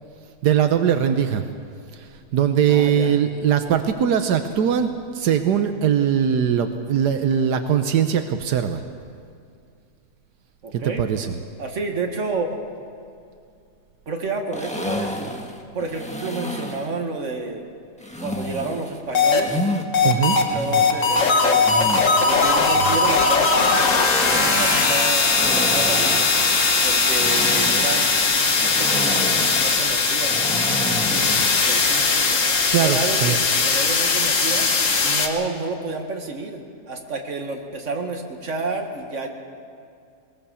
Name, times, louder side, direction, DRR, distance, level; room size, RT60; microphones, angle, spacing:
voice 1, 0.4-1.4 1.9-8.8 10.7-11.3 20.0-20.4 32.7-33.3, right 8 dB, 85° right, 7 dB, 1.5 m, -21 dB
voice 2, 2.7-3.1 10.6-11.0 11.6-12.8 14.1-15.4 15.7-17.6 18.2-19.6 20.0-21.6 22.2-26.3 26.8-30.4 31.0-32.4 32.7-34.7 35.0-36.6 36.9-39.3, right 3 dB, 50° right, 2 dB, 2.2 m, -30 dB
sound 1, 14.5-16.9 18.0-19.8 20.3-22.3 23.7-31.6, left 1 dB, 5° left, 1.4 m, -31 dB
sound 2, 19.1-19.4 19.9-20.4 20.7-35.3, left 4 dB, 50° left, 1.7 m, -19 dB
21.0 x 19.5 x 7.0 m, 2.4 s
omnidirectional pair, 1.7 m